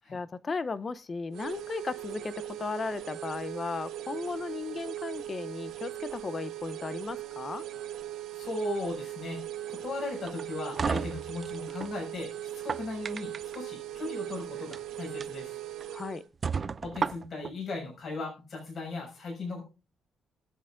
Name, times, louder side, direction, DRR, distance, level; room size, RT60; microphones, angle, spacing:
voice 1, 0.1-7.6 15.9-16.2, left 4 dB, 35° left, 0.6 m, -36 dB
sound 1, 1.3-16.2, right 12 dB, 85° right, 1.9 m, -39 dB
voice 2, 8.3-9.4 9.7-15.6 16.8-19.6, left 2 dB, 55° left, 6.3 m, -37 dB
sound 2, 10.3-11.9 12.5-13.6 14.6-14.8 15.2-15.3 15.8-15.9 16.4-17.5, right 5 dB, 40° right, 0.6 m, -33 dB
20.5 x 7.8 x 2.5 m
cardioid pair, 90°, 0 cm